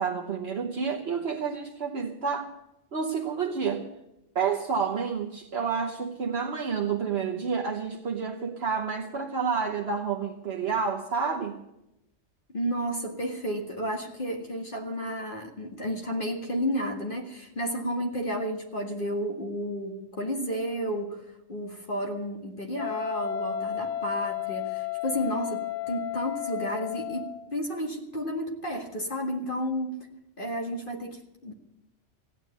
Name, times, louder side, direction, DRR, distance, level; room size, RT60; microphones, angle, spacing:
voice 1, 0.0-2.5 2.9-3.9 4.3-11.6, right 6 dB, 55° right, 0 dB, 1.2 m, -29 dB
voice 2, 12.5-30.1 30.4-31.5, equal, 45° left, 2 dB, 1.9 m, -32 dB
Wind instrument woodwind instrument, 22.8-27.5, left 10 dB, 75° left, 1.2 m, -33 dB
15.5 x 9.6 x 7.9 m, 0.89 s
omnidirectional pair, 1.3 m